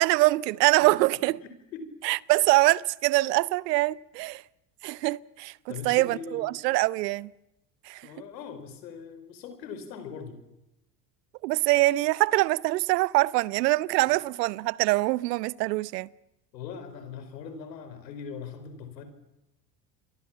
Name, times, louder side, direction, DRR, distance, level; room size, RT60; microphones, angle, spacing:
voice 1, 0.0-1.4 2.0-4.4 4.8-7.3 7.9-8.0 11.4-16.1, right 20 dB, 75° right, 0.9 m, -24 dB
voice 2, 1.4-1.9 5.7-6.6 8.0-10.4 16.5-19.0, left 6 dB, 80° left, 4.8 m, -41 dB
29.0 x 24.0 x 7.4 m
hypercardioid pair, 75°, 50 cm